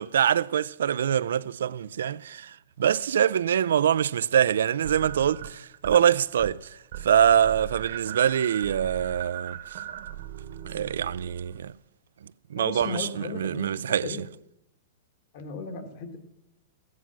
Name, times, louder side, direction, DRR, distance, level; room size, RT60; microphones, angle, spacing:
voice 1, 0.0-6.7 7.0-9.8 10.7-11.7 12.5-14.2, right 9 dB, 80° right, 0.4 m, -24 dB
sound 1, 4.8-6.0 6.3-6.6 6.9-11.7, right 10 dB, 50° right, 1.1 m, -39 dB
voice 2, 12.5-13.7 14.0-14.2 15.3-16.2, left 4 dB, 35° left, 1.5 m, -35 dB
14.5 x 9.5 x 6.1 m
supercardioid pair, 175°, 0 cm